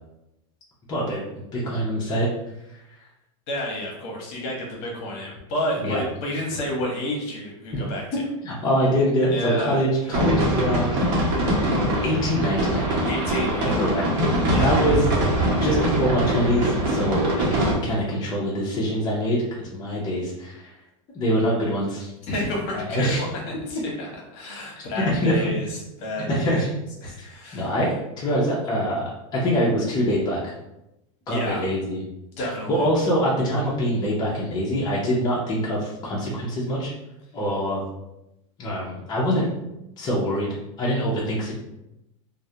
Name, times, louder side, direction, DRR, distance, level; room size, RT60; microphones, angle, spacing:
voice 1, 0.9-2.3 2.7-2.8 5.8-6.0 8.4-11.3 12.0-13.0 13.6-14.0 14.6-15.1 15.6-20.7 21.1-22.1 22.7-23.2 24.9-25.4 26.3-26.7 27.0-30.4 31.3-32.0 32.4-36.9 37.3-37.8 38.6-39.5 40.0-40.5 40.8-41.5, equal, 25° left, -6 dB, 0.6 m, -24 dB
voice 2, 3.5-8.2 9.3-9.8 13.1-13.9 14.4-14.7 22.3-26.6 27.0-27.7 31.3-31.6 32.4-32.9, left 1 dB, 50° left, -1 dB, 0.9 m, -30 dB
sound 1, 10.1-17.7, right 1 dB, 50° right, 0.9 m, -23 dB
2.3 x 2.1 x 2.7 m, 0.90 s
supercardioid pair, 130°, 17 cm